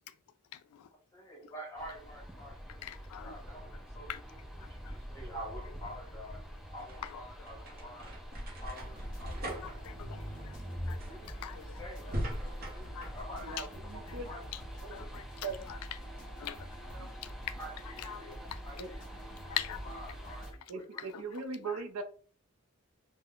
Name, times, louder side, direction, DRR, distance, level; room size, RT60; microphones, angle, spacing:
voice 1, 0.5-0.9 1.4-1.5 2.8-3.4 3.7-3.8 4.1-4.2 4.6-5.0 7.0-7.2 7.5-7.7 8.0-8.1 9.6-11.8 12.9-13.1 13.4-13.7 14.1-14.6 14.9-15.8 16.4-17.6 17.8-18.8 19.5-19.9 20.6-20.7 21.0-21.8, left 11 dB, 85° left, 0.3 m, -44 dB
voice 2, 1.1-2.8 3.2-4.1 4.7-6.4 6.7-8.2 8.6-9.7 10.9-11.4 11.8-13.5 13.9-14.4 17.6-18.3 18.6-19.1 19.4-19.6 19.9-21.0, equal, 15° left, 1.1 m, -48 dB
sound 1, 1.8-20.5, equal, ahead, 0.4 m, -48 dB
sound 2, 6.6-13.2, equal, 40° right, 0.7 m, -40 dB
sound 3, 8.6-20.6, equal, 35° left, 0.8 m, -47 dB
voice 3, 13.4-14.3 14.8-15.1 15.4-15.6 16.9-17.1 18.8-18.9 20.7-22.0, right 4 dB, 75° right, 0.5 m, -40 dB
3.4 x 2.1 x 2.3 m
head